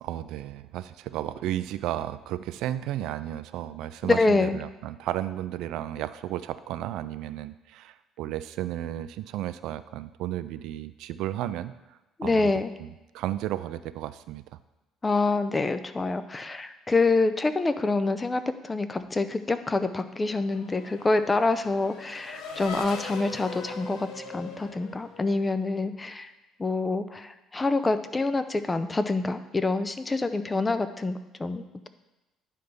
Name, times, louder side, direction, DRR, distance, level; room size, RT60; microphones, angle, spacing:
voice 1, 0.0-12.5 12.8-14.4, right 13 dB, 75° right, 14 dB, 0.3 m, -33 dB
voice 2, 4.0-4.6 12.2-12.7 15.0-26.3 26.6-31.9, left 3 dB, 15° left, 11 dB, 0.4 m, -26 dB
Race car auto racing / Accelerating revving vroom, 19.8-25.8, left 4 dB, 80° left, 0.9 m, -41 dB
9.6 x 3.3 x 5.2 m, 1.0 s
cardioid pair, 130°, 0 cm